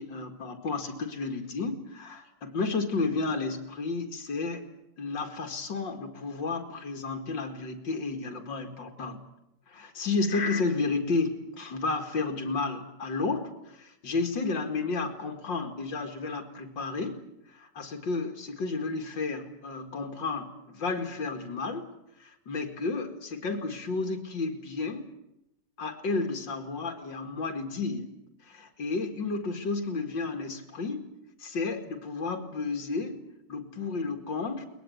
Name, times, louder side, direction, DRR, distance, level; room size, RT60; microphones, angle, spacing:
voice 1, 0.0-4.6 5.0-9.2 9.7-17.2 17.5-21.9 22.2-25.1 25.8-28.1 28.4-31.1 31.4-33.2 33.5-34.7, left 3 dB, 80° left, 4 dB, 2.8 m, -32 dB
22.5 x 20.5 x 9.4 m, 0.84 s
omnidirectional pair, 2.0 m